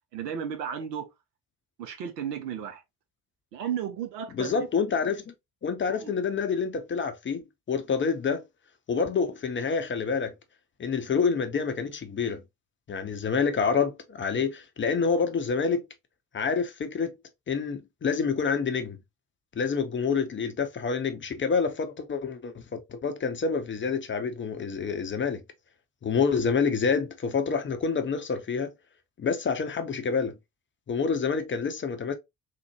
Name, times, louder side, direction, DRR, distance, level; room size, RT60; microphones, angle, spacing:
voice 1, 0.1-1.1 1.8-2.8 3.5-4.7 6.0-6.1, right 8 dB, 80° right, 0.7 m, -34 dB
voice 2, 4.3-5.3 5.6-7.4 7.7-8.4 8.9-10.3 10.8-12.4 12.9-15.8 16.3-17.1 17.5-19.0 19.6-25.4 26.0-28.7 29.2-30.4 30.9-32.1, left 5 dB, 25° left, 0.5 m, -27 dB
3.7 x 2.1 x 2.8 m
figure-of-eight pair, 45°, 49 cm